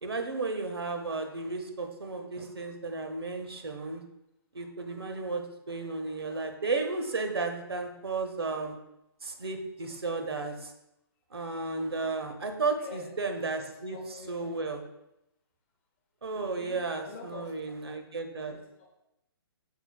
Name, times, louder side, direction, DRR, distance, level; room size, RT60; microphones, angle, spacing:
voice 1, 0.0-4.0 4.5-8.8 9.2-10.7 11.3-14.0 14.3-14.8 16.2-18.5, right 3 dB, 75° right, 5 dB, 0.7 m, -33 dB
voice 2, 12.8-13.1 13.9-14.5 16.3-17.6 18.5-19.0, left 4 dB, 30° left, 1 dB, 0.7 m, -46 dB
5.6 x 4.1 x 2.3 m, 0.86 s
figure-of-eight pair, 130°, 13 cm